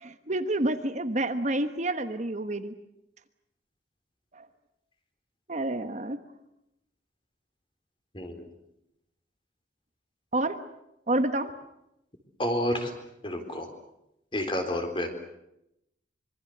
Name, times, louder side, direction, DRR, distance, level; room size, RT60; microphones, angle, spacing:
voice 1, 0.0-2.7 4.3-4.5 5.5-6.2 10.3-10.6 11.1-11.5, right 1 dB, 40° right, 8 dB, 1.3 m, -28 dB
voice 2, 8.1-8.5 12.4-12.9 13.2-13.7 14.3-15.1, left 1 dB, 25° left, 6 dB, 4.0 m, -29 dB
25.5 x 24.0 x 8.0 m, 0.84 s
head